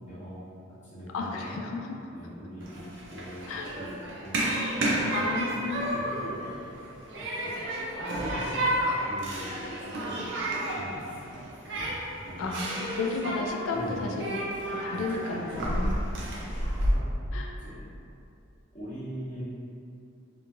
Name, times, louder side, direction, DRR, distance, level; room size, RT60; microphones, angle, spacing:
voice 1, 0.1-0.4 0.8-1.6 2.1-2.8 3.1-3.4 3.7-3.9 4.2-5.1 5.6-6.6 7.2-7.5 7.9-8.6 9.0-9.5 9.8-10.3 10.7-11.4 12.2-12.6 13.7-14.1 14.9-15.0 16.4-17.0 17.6-17.8 18.7-19.4, equal, 35° left, -11 dB, 0.8 m, -42 dB
voice 2, 1.1-1.9 3.5-3.7 5.1-6.0 12.4-14.4 14.7-15.9 17.3-17.6, left 3 dB, 80° left, 1 dB, 0.3 m, -33 dB
Human group actions, 2.6-16.9, right 1 dB, 60° right, 0.5 m, -32 dB
2.8 x 2.5 x 2.4 m, 2.5 s
head